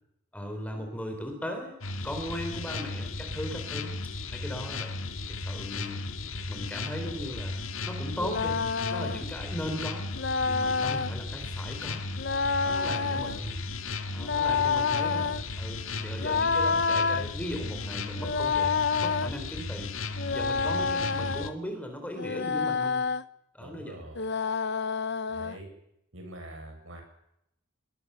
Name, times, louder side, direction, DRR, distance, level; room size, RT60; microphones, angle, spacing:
voice 1, 0.3-1.8 2.0-4.0 4.3-4.9 5.5-6.0 6.5-8.6 8.9-10.1 10.5-12.0 12.6-13.6 14.1-18.7 19.0-19.9 20.3-23.1 23.5-23.9, equal, 5° left, 4 dB, 4.3 m, -38 dB
sound 1, 1.8-21.5, left 3 dB, 70° left, 2.0 m, -35 dB
sound 2, 8.2-9.2 10.2-11.1 12.2-13.4 14.2-15.4 16.2-17.3 18.2-19.3 20.2-21.5 22.2-23.2 24.2-25.6, left 5 dB, 50° left, 0.8 m, -28 dB
voice 2, 12.7-13.5 23.6-24.3 25.3-25.7 26.1-27.0, right 1 dB, 65° right, 4 dB, 7.8 m, -45 dB
25.5 x 22.0 x 7.1 m, 0.80 s
head